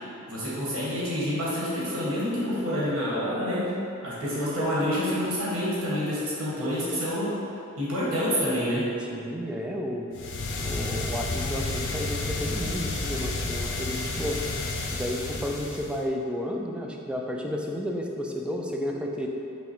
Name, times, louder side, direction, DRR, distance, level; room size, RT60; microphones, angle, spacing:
voice 1, 0.3-7.4 7.8-8.9, equal, 75° right, -8 dB, 1.4 m, -28 dB
voice 2, 9.1-10.1 10.6-14.4 14.9-19.3, equal, 5° right, 0 dB, 0.3 m, -32 dB
sound 1, 10.1-16.0, left 2 dB, 60° left, 0.6 m, -31 dB
5.6 x 2.2 x 4.3 m, 2.7 s
head